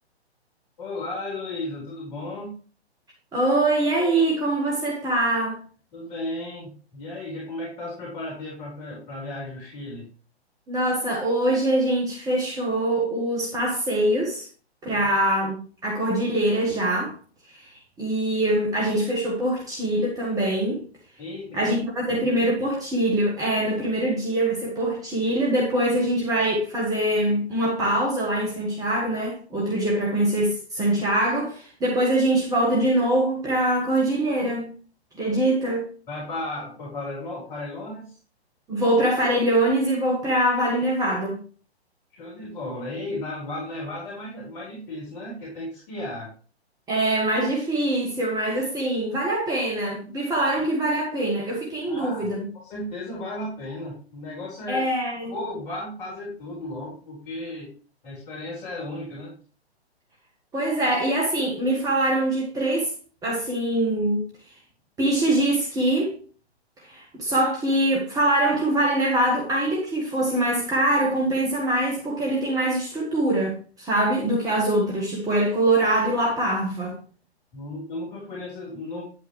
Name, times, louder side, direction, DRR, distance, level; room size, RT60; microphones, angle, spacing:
voice 1, 0.8-2.5 5.9-10.1 21.2-21.7 36.1-38.2 42.1-46.3 51.9-54.8 55.3-57.7 58.0-59.3 77.5-79.0, left 2 dB, 40° left, 3.9 m, -34 dB
voice 2, 3.3-5.6 10.7-14.5 14.8-17.1 17.5-17.7 18.0-20.8 21.5-34.7 35.2-35.9 38.7-41.4 46.9-52.4 54.7-55.3 60.5-62.9 63.2-64.2 65.0-66.1 66.8-77.0, right 1 dB, 10° right, 1.4 m, -23 dB
9.5 x 8.1 x 3.2 m
figure-of-eight pair, 120°, 33 cm